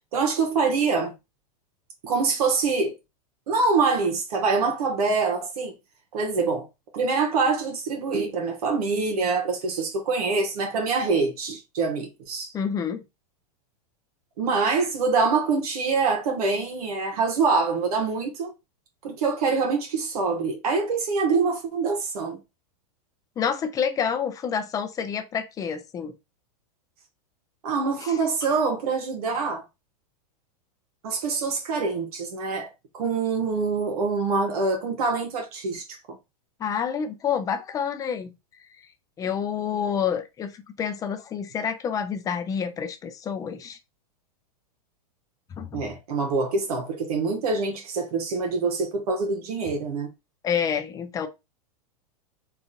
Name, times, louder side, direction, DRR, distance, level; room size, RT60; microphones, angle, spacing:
voice 1, 0.1-1.1 2.0-3.0 3.5-5.7 6.1-6.7 6.9-12.5 14.4-18.5 19.0-22.4 27.6-29.6 31.0-32.7 32.9-36.2 45.7-50.1, right 4 dB, 75° right, 0.9 m, -25 dB
voice 2, 12.5-13.1 23.4-26.1 28.0-28.3 36.6-38.3 39.2-43.8 45.5-45.9 50.4-51.3, left 7 dB, 20° left, 0.4 m, -28 dB
3.6 x 2.5 x 2.6 m
hypercardioid pair, 125°, 20 cm